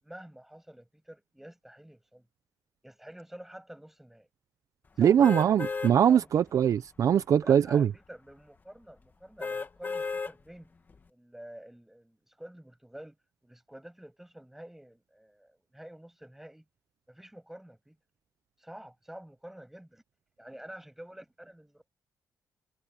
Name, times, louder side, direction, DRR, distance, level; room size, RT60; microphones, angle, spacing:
voice 1, 0.0-2.3 2.8-4.3 5.0-5.6 6.1-6.5 7.4-10.7 11.1-13.2 13.4-16.6 17.1-18.0 18.6-20.0 20.4-21.9, right 1 dB, 5° right, 7.0 m, -48 dB
voice 2, 5.0-7.9, right 9 dB, 55° right, 0.6 m, -22 dB
sound 1, 5.2-5.9 6.5-6.6 9.4-10.3 10.9-11.0, left 4 dB, 30° left, 1.9 m, -34 dB
cardioid pair, 135°, 7 cm